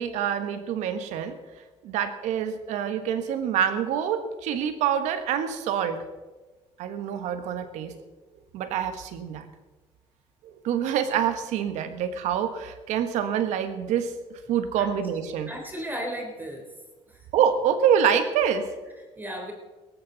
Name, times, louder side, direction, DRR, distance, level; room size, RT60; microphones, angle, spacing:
voice 1, 0.0-1.4 1.8-6.0 6.8-8.0 8.5-9.5 10.4-15.5 17.3-18.7, right 8 dB, 85° right, 9 dB, 1.4 m, -26 dB
voice 2, 15.5-16.7 17.1-17.3 19.2-19.5, equal, 15° right, 2 dB, 3.5 m, -35 dB
17.5 x 14.5 x 4.1 m, 1.2 s
cardioid pair, 105°, 12 cm